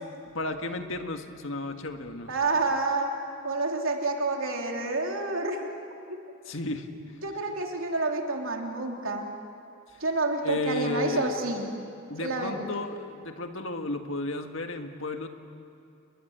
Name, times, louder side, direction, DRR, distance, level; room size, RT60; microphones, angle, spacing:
voice 1, 0.3-2.3 6.5-7.2 10.4-11.4 12.1-15.3, left 2 dB, 70° left, 5 dB, 1.8 m, -33 dB
voice 2, 2.3-3.1 3.4-5.7 7.2-9.3 10.0-11.7 12.2-12.8, right 3 dB, 75° right, 1 dB, 3.1 m, -29 dB
29.5 x 21.0 x 8.0 m, 2.6 s
head